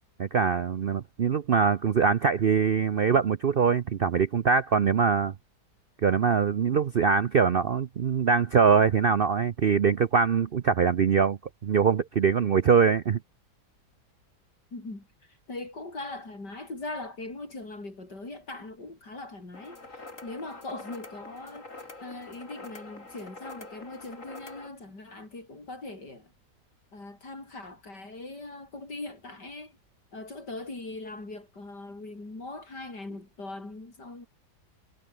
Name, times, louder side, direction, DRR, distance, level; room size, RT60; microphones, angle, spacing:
voice 1, 0.2-5.3 6.0-13.2, right 6 dB, 60° right, 0.6 m, -23 dB
voice 2, 14.7-21.7 22.0-26.3 26.9-29.8 30.1-34.3, left 2 dB, 90° left, 6.9 m, -40 dB
sound 1, 19.5-24.7, left 2 dB, 50° left, 4.9 m, -45 dB
omnidirectional pair, 1.8 m